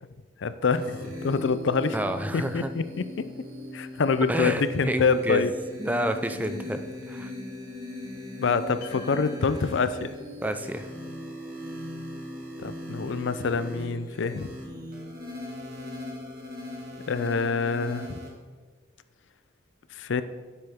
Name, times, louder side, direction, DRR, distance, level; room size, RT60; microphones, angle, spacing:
voice 1, 0.4-2.0 2.3-3.0 3.7-5.5 8.4-10.1 12.6-14.5 17.1-18.2 20.0-20.2, left 4 dB, 75° left, 12 dB, 0.5 m, -26 dB
sound 1, 0.7-18.3, left 1 dB, 50° right, 1.9 m, -39 dB
voice 2, 1.9-2.7 4.3-5.5 5.8-6.8 7.1-7.3 10.4-10.9, right 1 dB, 10° right, 9 dB, 0.4 m, -29 dB
sound 2, 8.8-13.3, left 2 dB, 55° left, 2.9 m, -49 dB
9.7 x 7.9 x 3.6 m, 1.4 s
head